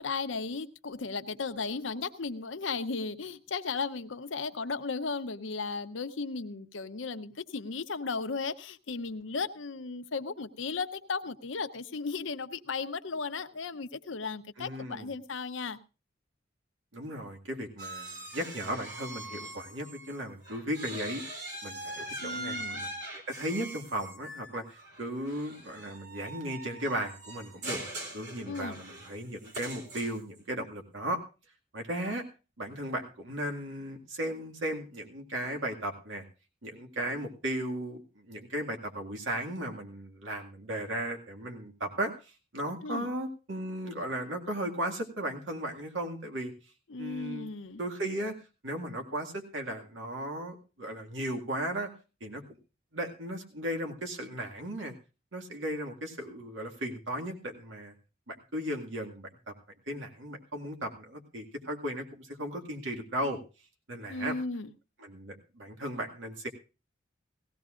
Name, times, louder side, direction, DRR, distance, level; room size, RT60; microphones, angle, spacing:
voice 1, 0.0-15.8 22.2-22.8 28.5-28.8 42.8-43.1 46.9-47.8 64.1-64.7, left 4 dB, 80° left, 10 dB, 0.8 m, -35 dB
voice 2, 14.6-15.1 16.9-23.0 23.3-27.8 28.1-31.2 31.7-32.2 32.6-36.2 36.6-46.5 47.0-47.5 47.8-48.4 48.6-51.9 52.2-52.4 52.9-54.9 55.3-57.9 58.3-59.5 59.9-63.4 63.9-64.4 65.0-66.5, right 1 dB, 80° right, 3 dB, 2.0 m, -36 dB
sound 1, 17.8-20.2 20.4-30.4, right 1 dB, 65° right, 3.6 m, -42 dB
19.0 x 15.5 x 2.5 m, 0.31 s
head